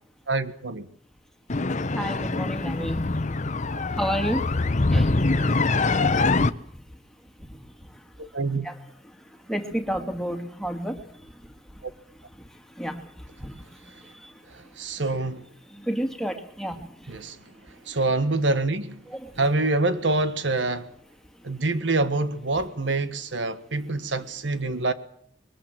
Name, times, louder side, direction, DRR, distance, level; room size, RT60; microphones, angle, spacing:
voice 1, 0.3-0.9 4.9-5.0 8.3-8.7 14.5-15.4 17.1-17.4 17.9-19.0 19.4-20.9 21.4-24.9, right 2 dB, 75° right, 1.5 m, -26 dB
sound 1, 1.5-6.5, left 3 dB, 40° left, 0.9 m, -24 dB
voice 2, 1.9-3.1 4.0-4.5 4.9-5.1 5.4-5.6 8.6-8.7 9.5-11.0 12.8-13.0 13.4-13.6 14.2-14.3 15.7-16.9 19.1-19.3, equal, 5° left, 2.3 m, -30 dB
22.5 x 21.0 x 7.6 m
head